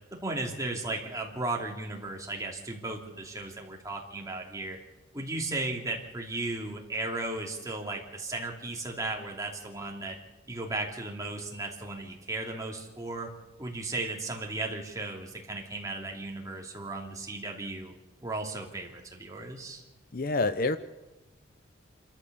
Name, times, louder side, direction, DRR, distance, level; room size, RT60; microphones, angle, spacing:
voice 1, 0.2-4.8 5.1-10.2 10.5-13.3 13.6-17.9 18.2-19.8, right 2 dB, 15° right, 0 dB, 2.9 m, -35 dB
voice 2, 20.1-20.8, left 3 dB, 45° left, 12 dB, 0.6 m, -27 dB
27.5 x 13.5 x 6.9 m, 1.1 s
head